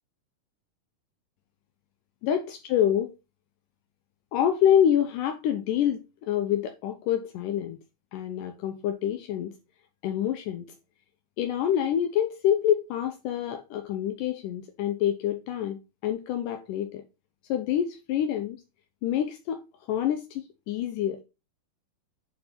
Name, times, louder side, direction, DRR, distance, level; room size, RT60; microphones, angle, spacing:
voice 1, 2.2-3.1 4.3-7.8 8.1-9.5 10.0-10.7 11.4-17.0 17.5-18.6 19.0-19.6 19.9-21.2, left 10 dB, 80° left, 2.3 m, -27 dB
7.6 x 5.6 x 4.3 m
omnidirectional pair, 3.8 m